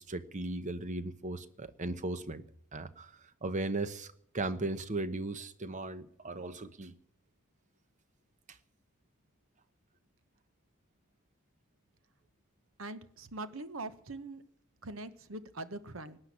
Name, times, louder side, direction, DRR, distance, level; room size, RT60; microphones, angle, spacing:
voice 1, 0.0-2.4 2.7-3.1 3.4-6.9, right 2 dB, 35° right, 0.9 m, -37 dB
voice 2, 12.8-14.4 14.8-16.2, right 2 dB, 65° right, 1.1 m, -42 dB
18.0 x 9.8 x 7.4 m
head